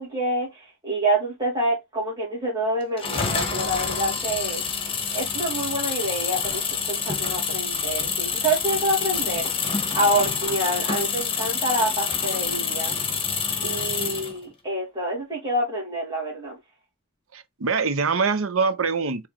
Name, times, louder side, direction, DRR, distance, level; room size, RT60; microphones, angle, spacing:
voice 1, 0.0-4.6 5.1-6.6 6.9-12.9 13.6-16.6, right 1 dB, 20° right, 2.7 m, -27 dB
sound 1, 3.0-14.4, left 6 dB, 25° left, 0.9 m, -27 dB
voice 2, 17.3-19.3, right 5 dB, 75° right, 0.7 m, -24 dB
4.7 x 3.0 x 3.6 m
head